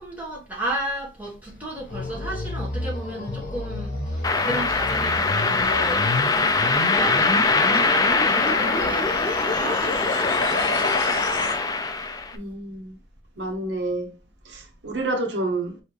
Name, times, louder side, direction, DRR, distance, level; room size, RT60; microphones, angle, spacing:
voice 1, 0.0-9.2 9.5-11.7, right 1 dB, 10° right, 1.5 m, -34 dB
sound 1, 1.4-11.6, left 2 dB, 45° left, 1.3 m, -30 dB
sound 2, 4.2-12.3, left 3 dB, 20° left, 0.4 m, -22 dB
sound 3, 8.5-10.9, left 4 dB, 75° left, 0.5 m, -35 dB
voice 2, 12.3-12.9 13.4-14.1 14.4-15.8, right 2 dB, 80° right, 0.8 m, -29 dB
4.6 x 3.1 x 3.3 m
head